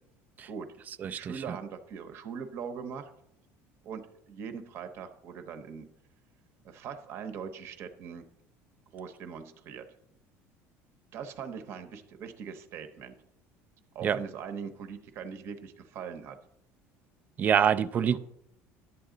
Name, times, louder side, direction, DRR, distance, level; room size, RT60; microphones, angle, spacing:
voice 1, 1.1-3.1 3.8-5.9 6.6-8.2 8.9-9.9 11.1-13.1 13.9-16.4 17.9-18.2, right 6 dB, 45° right, 0.8 m, -41 dB
voice 2, 17.4-18.2, right 8 dB, 30° right, 0.3 m, -25 dB
11.0 x 8.1 x 3.8 m
cardioid pair, 155°, 6 cm